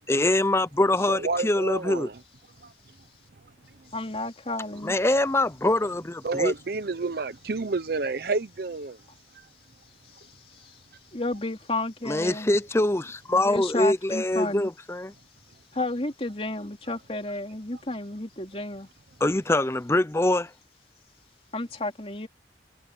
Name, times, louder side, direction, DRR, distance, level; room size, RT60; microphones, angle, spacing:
voice 1, 0.1-2.1 4.8-6.5 12.1-15.1 19.2-20.5, left 1 dB, 15° left, 0.6 m, -24 dB
voice 2, 1.1-2.2 2.6-2.7 6.2-9.0, right 3 dB, 60° right, 0.7 m, -29 dB
voice 3, 3.9-5.0 10.2-10.3 10.5-10.7 11.1-12.5 13.4-14.7 15.7-18.9 21.5-22.3, left 2 dB, 35° left, 3.5 m, -32 dB
head